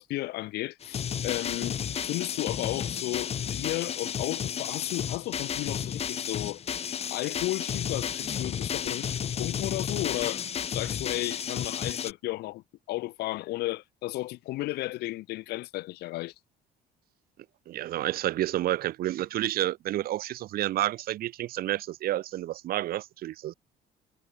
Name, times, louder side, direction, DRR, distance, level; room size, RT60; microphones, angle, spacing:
voice 1, 0.0-1.8 2.0-6.6 7.1-10.4 10.7-16.3, left 18 dB, 75° left, 0.5 m, -34 dB
sound 1, 0.8-12.1, left 8 dB, 35° left, 0.7 m, -32 dB
voice 2, 17.7-23.5, right 14 dB, 60° right, 0.7 m, -30 dB
cardioid pair, 110°, 17 cm